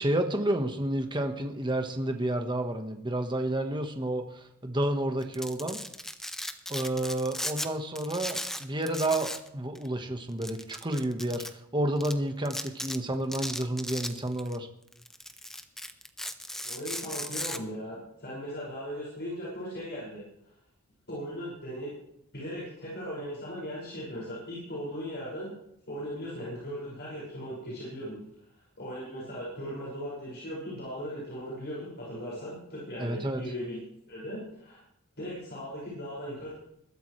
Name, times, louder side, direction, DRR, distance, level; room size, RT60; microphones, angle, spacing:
voice 1, 0.0-5.8 6.7-14.7 33.0-33.4, right 1 dB, 20° right, 5 dB, 1.4 m, -30 dB
Domestic sounds home sounds, 5.2-7.7 8.0-9.5 9.7-9.9 10.4-11.5 12.0-12.1 12.5-13.0 13.3-14.6 14.9-17.6, left 1 dB, ahead, 0.7 m, -36 dB
voice 2, 16.6-20.2 21.1-21.9 22.3-25.5 25.9-28.2 28.8-33.8 34.1-34.8 35.2-36.5, equal, 50° left, -6 dB, 5.9 m, -38 dB
21.0 x 13.0 x 3.3 m, 0.76 s
head